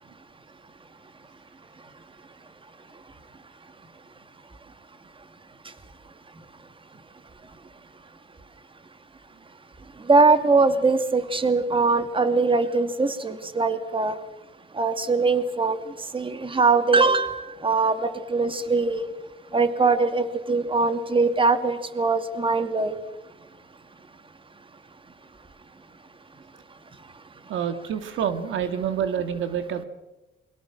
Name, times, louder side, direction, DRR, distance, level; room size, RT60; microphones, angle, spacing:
voice 1, 10.1-14.1 14.8-15.8 16.1-19.1 19.5-22.9, right 3 dB, 25° right, 9 dB, 2.4 m, -22 dB
voice 2, 27.5-29.8, right 8 dB, 75° right, 9 dB, 2.0 m, -27 dB
28.5 x 23.5 x 6.2 m, 1.0 s
cardioid pair, 90°, 20 cm